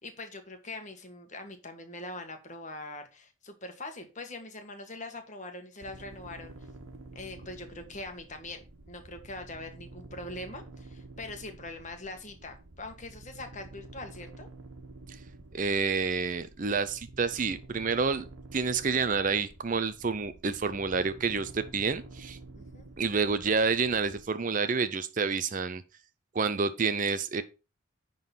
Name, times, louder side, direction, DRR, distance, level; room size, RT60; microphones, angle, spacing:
voice 1, 0.0-6.5 7.1-14.5 22.5-22.9, left 2 dB, 35° left, 1.5 m, -42 dB
sound 1, 5.8-24.3, right 2 dB, 70° right, 1.5 m, -49 dB
voice 2, 15.5-18.2 18.5-22.4 23.0-25.8 26.3-27.4, right 5 dB, 35° right, 0.5 m, -28 dB
10.5 x 3.9 x 5.5 m
head